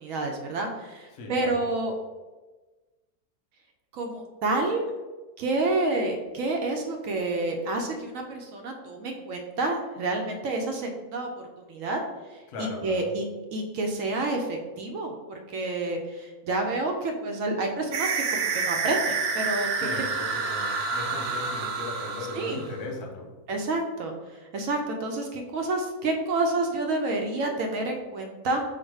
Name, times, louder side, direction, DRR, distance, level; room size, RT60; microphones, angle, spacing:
voice 1, 0.0-1.9 3.9-4.8 5.4-11.3 11.7-12.0 12.3-13.2 13.5-19.7 22.3-22.6 23.5-24.1 24.5-28.6, right 2 dB, 70° right, 3 dB, 0.9 m, -29 dB
voice 2, 1.1-1.6 12.5-13.1 19.8-23.3, left 2 dB, 85° left, 1 dB, 1.3 m, -37 dB
sound 1, 17.9-22.8, right 4 dB, 90° right, 0.5 m, -28 dB
4.7 x 2.2 x 4.6 m, 1.2 s
omnidirectional pair, 1.6 m